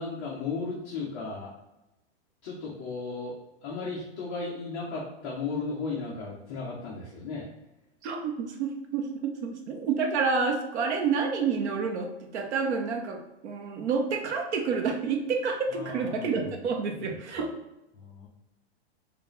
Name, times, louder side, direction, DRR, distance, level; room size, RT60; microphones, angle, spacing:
voice 1, 0.0-1.5 2.4-3.4 3.6-7.5 15.7-16.6 16.9-17.4 17.9-18.3, left 4 dB, 20° left, -5 dB, 0.4 m, -35 dB
voice 2, 8.0-17.5, right 5 dB, 75° right, 3 dB, 1.0 m, -29 dB
4.6 x 2.4 x 3.1 m, 0.95 s
supercardioid pair, 170°, 34 cm